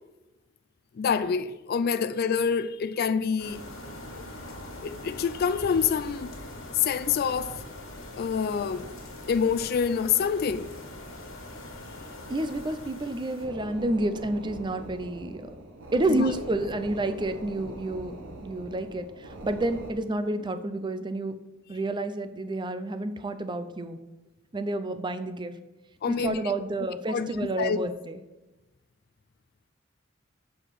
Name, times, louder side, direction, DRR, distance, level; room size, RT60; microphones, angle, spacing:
voice 1, 1.0-3.6 4.1-4.2 4.8-6.3 6.7-7.6 8.2-8.9 9.3-10.7 16.2-16.3 26.0-26.5 27.1-27.8, left 6 dB, 50° left, 0.4 m, -26 dB
sound 1, 3.4-13.5, left 1 dB, 85° left, 1.8 m, -42 dB
voice 2, 12.3-15.5 15.9-18.2 18.4-21.4 21.7-24.0 24.5-25.5 26.1-28.2, right 2 dB, 25° right, 0.5 m, -30 dB
sound 2, 13.4-19.9, right 1 dB, 85° right, 1.1 m, -42 dB
6.2 x 5.0 x 5.8 m
head